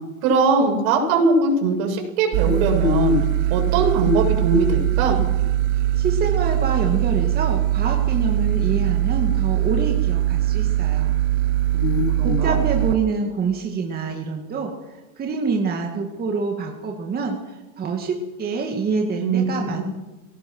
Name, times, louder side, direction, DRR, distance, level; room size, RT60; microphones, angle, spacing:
voice 1, 0.2-3.2 3.5-5.2 11.7-12.6 19.2-19.8, right 2 dB, 60° right, 2 dB, 7.4 m, -20 dB
sound 1, 2.3-13.0, right 13 dB, 45° right, 0.8 m, -21 dB
voice 2, 6.0-11.1 12.2-19.8, right 4 dB, 20° right, 1 dB, 2.3 m, -26 dB
23.5 x 18.0 x 6.3 m, 1.1 s
supercardioid pair, 145°, 44 cm